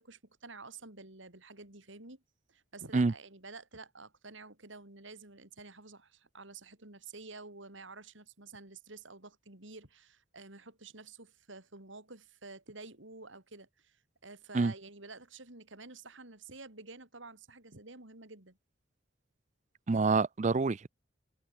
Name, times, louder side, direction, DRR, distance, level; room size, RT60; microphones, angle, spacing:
voice 1, 0.0-2.2 2.5-18.6, right 3 dB, 70° right, 3.7 m, -50 dB
voice 2, 19.9-20.9, right 3 dB, 35° right, 0.4 m, -27 dB
head